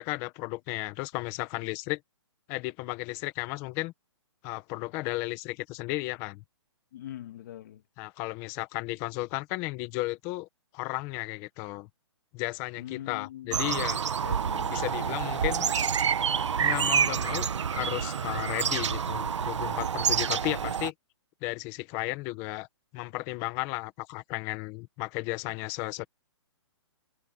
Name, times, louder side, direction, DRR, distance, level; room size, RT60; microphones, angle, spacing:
voice 1, 0.0-2.0 2.5-3.9 4.4-6.4 8.0-10.5 10.7-11.9 12.3-14.0 14.7-15.7 16.6-20.9 21.4-22.7 22.9-26.0, left 20 dB, 20° left, 1.2 m, -34 dB
voice 2, 6.9-7.8 12.8-13.6 14.2-14.8, left 12 dB, 40° left, 2.5 m, -42 dB
sound 1, 13.5-20.9, right 7 dB, 80° right, 1.3 m, -28 dB
hypercardioid pair, 170°, 15 cm